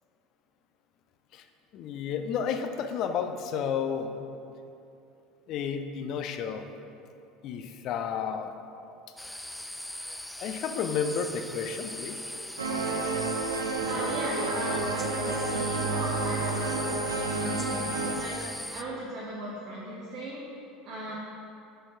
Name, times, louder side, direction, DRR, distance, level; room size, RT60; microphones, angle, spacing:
voice 1, 1.7-4.2 5.5-6.6 7.4-8.5 10.4-12.2, left 7 dB, 55° left, 7 dB, 0.5 m, -31 dB
sound 1, 9.2-18.8, left 1 dB, 5° left, 0.3 m, -39 dB
sound 2, 12.6-18.2, right 3 dB, 85° right, 0.6 m, -30 dB
voice 2, 13.8-21.1, right 1 dB, 50° right, -6 dB, 1.1 m, -37 dB
5.5 x 5.4 x 5.7 m, 2.7 s
hypercardioid pair, 70°, 0 cm